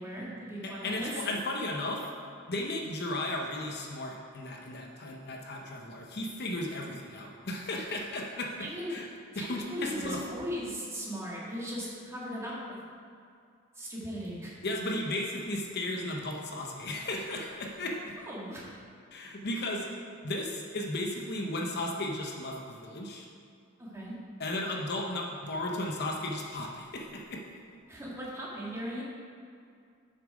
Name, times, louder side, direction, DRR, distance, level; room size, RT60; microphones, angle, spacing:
voice 1, 0.0-1.2 8.6-9.0 9.3-12.8 13.8-14.5 18.3-18.7 23.8-24.1 27.9-29.0, equal, 15° right, -6 dB, 1.8 m, -38 dB
voice 2, 0.6-2.0 2.5-9.1 9.4-10.2 14.6-18.1 19.1-19.9 20.2-23.3 24.4-27.4, left 1 dB, 55° left, 0 dB, 0.9 m, -35 dB
7.5 x 6.5 x 5.1 m, 2.3 s
head